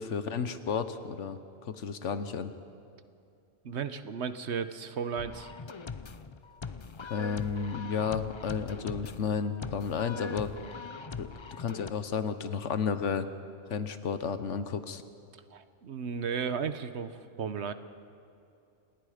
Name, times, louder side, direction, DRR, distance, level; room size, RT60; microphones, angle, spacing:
voice 1, 0.0-2.5 7.1-10.5 11.2-13.3 13.7-15.0, left 6 dB, 70° left, 11 dB, 1.3 m, -32 dB
voice 2, 3.6-5.5 15.5-17.7, right 6 dB, 60° right, 11 dB, 1.1 m, -34 dB
sound 1, 5.2-11.9, left 4 dB, 40° left, 0.4 m, -41 dB
28.5 x 19.5 x 5.0 m, 2.5 s
omnidirectional pair, 1.3 m